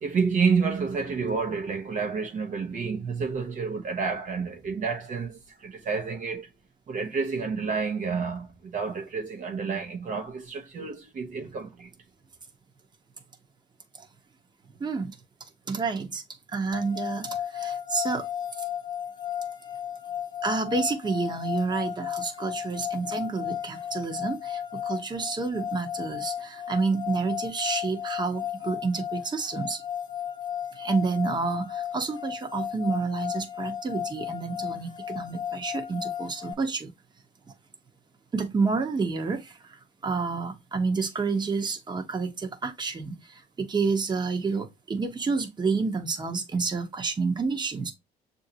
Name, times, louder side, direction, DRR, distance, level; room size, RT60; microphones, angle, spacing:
voice 1, 0.0-6.5 6.9-11.9, right 5 dB, 50° right, 0.9 m, -29 dB
voice 2, 14.8-15.2 15.7-16.2 16.5-18.3 18.6-18.7 20.4-29.8 30.8-36.9 38.3-47.9, right 4 dB, 25° right, 1.1 m, -29 dB
sound 1, 16.7-36.5, left 9 dB, 25° left, 1.0 m, -34 dB
7.0 x 2.7 x 2.7 m
cardioid pair, 110°, 17 cm